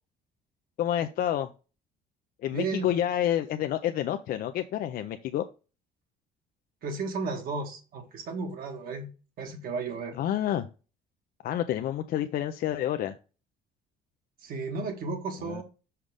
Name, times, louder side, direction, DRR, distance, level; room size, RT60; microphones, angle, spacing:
voice 1, 0.8-1.5 2.4-5.4 10.1-10.7 11.4-13.1 15.4-15.6, left 11 dB, 60° left, 0.5 m, -29 dB
voice 2, 2.5-2.9 6.8-9.1 9.4-10.1 14.4-15.6, right 4 dB, 60° right, 1.5 m, -33 dB
5.7 x 5.0 x 3.4 m
cardioid pair, 110°, 17 cm